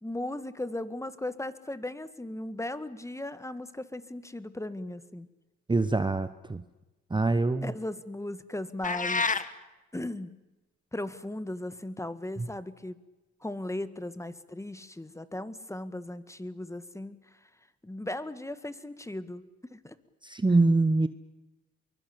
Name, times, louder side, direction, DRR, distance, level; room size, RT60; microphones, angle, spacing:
voice 1, 0.0-5.3 7.6-9.2 9.9-10.4 10.9-13.0 13.4-17.5 17.8-19.4 19.7-20.0, left 1 dB, 10° left, 13 dB, 1.7 m, -37 dB
voice 2, 5.7-6.6 7.1-7.7 12.4-12.5 20.2-21.1, right 3 dB, 15° right, 12 dB, 1.1 m, -24 dB
sound 1, 8.8-9.5, left 4 dB, 25° left, 1.8 m, -27 dB
23.5 x 22.5 x 8.6 m, 1.1 s
cardioid pair, 90°, 30 cm